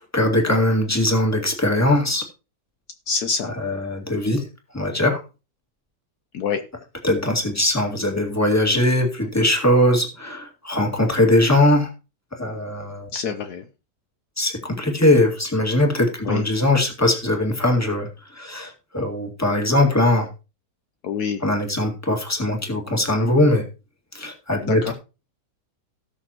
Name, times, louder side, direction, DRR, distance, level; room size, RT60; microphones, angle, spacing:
voice 1, 0.1-2.2 3.6-4.4 4.7-5.2 7.0-11.9 12.4-13.1 14.4-18.1 18.4-20.3 21.4-23.6 24.1-24.9, left 1 dB, 10° left, 2 dB, 2.1 m, -20 dB
voice 2, 3.1-3.5 6.3-6.6 13.1-13.6 16.2-16.4 21.0-21.4 24.6-24.9, left 6 dB, 70° left, 8 dB, 1.3 m, -26 dB
18.0 x 6.5 x 3.0 m, 0.30 s
omnidirectional pair, 1.8 m